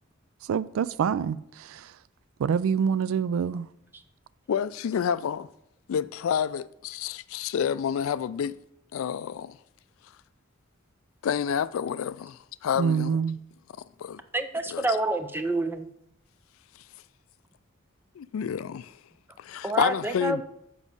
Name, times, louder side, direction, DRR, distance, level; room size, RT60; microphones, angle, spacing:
voice 1, 0.5-1.9 2.4-3.7 12.8-13.4, right 7 dB, 75° right, 0.3 m, -26 dB
voice 2, 4.5-5.5 5.9-8.6 8.9-9.6 11.2-13.2 14.0-14.2 14.7-15.0 18.2-19.0 19.4-20.4, left 8 dB, 75° left, 0.3 m, -29 dB
voice 3, 14.3-15.9 19.6-20.4, right 2 dB, 10° right, 0.5 m, -27 dB
7.3 x 4.7 x 5.4 m
head